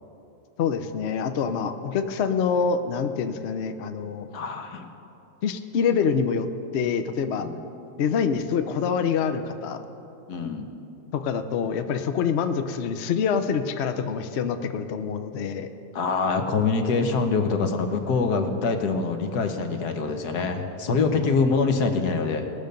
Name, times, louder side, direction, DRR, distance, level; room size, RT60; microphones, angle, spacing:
voice 1, 0.6-4.3 5.4-6.5 6.7-7.5 8.0-9.8 11.1-15.7 21.2-21.3, left 6 dB, 60° left, 8 dB, 0.7 m, -26 dB
voice 2, 4.3-4.9 7.4-7.6 10.3-10.7 15.9-22.5, left 4 dB, 80° left, 5 dB, 1.5 m, -25 dB
20.0 x 6.7 x 5.2 m, 2.8 s
omnidirectional pair, 1.7 m